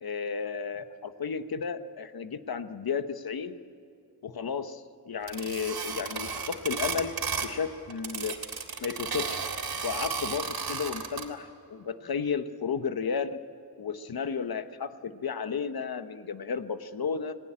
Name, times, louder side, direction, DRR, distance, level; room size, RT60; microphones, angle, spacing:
voice 1, 0.0-3.6 4.2-7.1 7.4-8.4 8.8-9.4 9.8-13.3 13.8-17.3, left 6 dB, 70° left, 9 dB, 1.2 m, -33 dB
sound 1, 5.3-7.6 7.9-11.2, right 5 dB, 75° right, 3.4 m, -33 dB
28.0 x 19.0 x 8.8 m, 2.6 s
wide cardioid pair, 115°, 37 cm